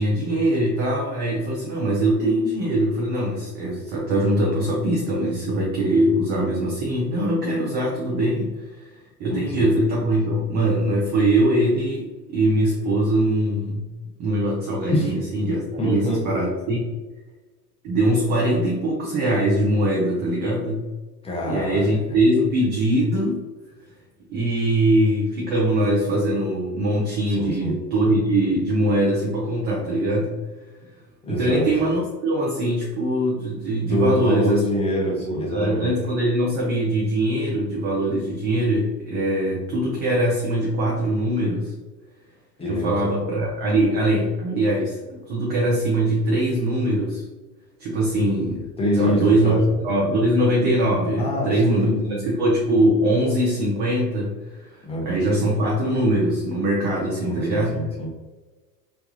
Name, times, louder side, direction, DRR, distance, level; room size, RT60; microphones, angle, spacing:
voice 1, 0.0-13.9 14.2-16.8 17.8-20.8 21.5-23.4 24.3-30.3 31.3-34.6 35.1-41.7 42.6-47.2 47.8-48.7 48.9-49.6 49.8-52.0 52.2-57.8, right 1 dB, 25° right, -3 dB, 0.4 m, -22 dB
voice 2, 9.3-9.7 14.9-15.1 15.8-16.2 21.2-22.2 27.4-27.7 31.2-31.7 33.8-35.9 42.6-42.9 48.8-49.6 51.2-52.2 54.8-55.2 57.2-58.1, equal, 10° left, -3 dB, 0.7 m, -25 dB
3.2 x 2.2 x 2.5 m, 1.2 s
figure-of-eight pair, 80°, 50 cm